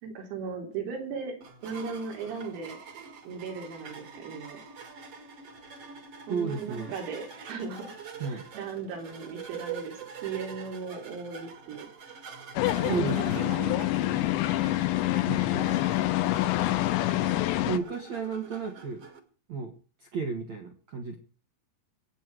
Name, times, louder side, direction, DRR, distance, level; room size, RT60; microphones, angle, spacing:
voice 1, 0.0-1.4 1.6-2.8 3.3-4.6 6.3-8.0 8.3-10.0 10.2-11.9 12.8-14.5, right 5 dB, 90° right, 3 dB, 6.5 m, -37 dB
sound 1, 1.4-19.2, right 6 dB, 45° right, 2.2 m, -45 dB
voice 2, 6.3-6.9 8.2-8.4 12.9-13.5 15.2-15.8 17.7-19.0 19.5-19.7 20.0-21.2, right 5 dB, 60° right, 4 dB, 1.8 m, -33 dB
sound 2, 12.6-17.8, left 16 dB, 75° left, 2.9 m, -26 dB
24.0 x 9.5 x 4.8 m, 0.38 s
omnidirectional pair, 6.0 m